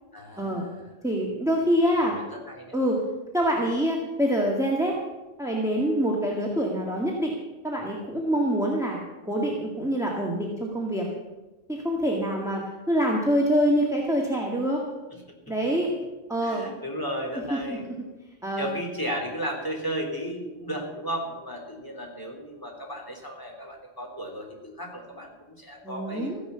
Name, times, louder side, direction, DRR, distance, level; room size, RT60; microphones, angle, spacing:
voice 1, 0.1-0.8 1.9-2.8 15.1-15.2 16.4-17.8 18.6-26.3, equal, 20° left, 0 dB, 3.4 m, -34 dB
voice 2, 1.0-2.2 2.7-3.0 3.3-5.0 5.4-7.3 7.6-9.0 9.2-11.1 11.7-14.8 15.5-15.9 16.3-16.7 17.5-17.9 18.4-18.7 25.8-26.4, equal, 5° right, -2 dB, 1.9 m, -25 dB
15.0 x 10.5 x 6.9 m, 1.1 s
omnidirectional pair, 1.1 m